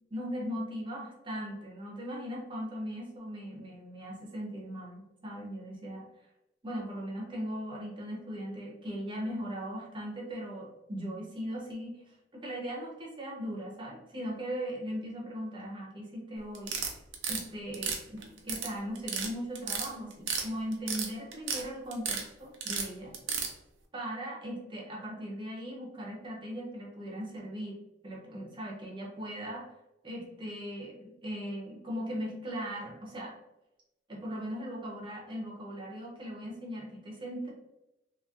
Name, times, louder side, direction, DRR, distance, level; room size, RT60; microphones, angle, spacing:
voice 1, 0.1-6.0 6.6-12.0 12.3-16.7 17.3-23.1 23.9-27.8 28.0-29.7 30.0-33.3 34.1-37.5, equal, 25° right, -2 dB, 0.8 m, -39 dB
sound 1, 16.5-17.4 17.7-18.7 19.0-19.3 19.6-20.5 20.7-21.6 21.9-22.2 22.6-23.5, right 6 dB, 90° right, 0.6 m, -32 dB
2.9 x 2.9 x 2.5 m, 0.89 s
head